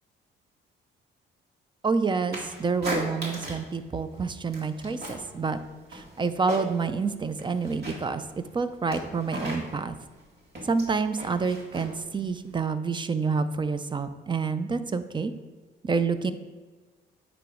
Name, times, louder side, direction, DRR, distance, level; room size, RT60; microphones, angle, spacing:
voice 1, 1.8-5.6 5.9-10.0 10.6-15.3 15.8-16.3, right 4 dB, 25° right, 11 dB, 0.5 m, -28 dB
sound 1, 2.3-3.7 4.0-5.3 5.6-6.9 7.3-12.7, right 1 dB, 55° right, 2.0 m, -37 dB
8.9 x 3.1 x 4.9 m, 1.3 s
cardioid pair, 90°, 20 cm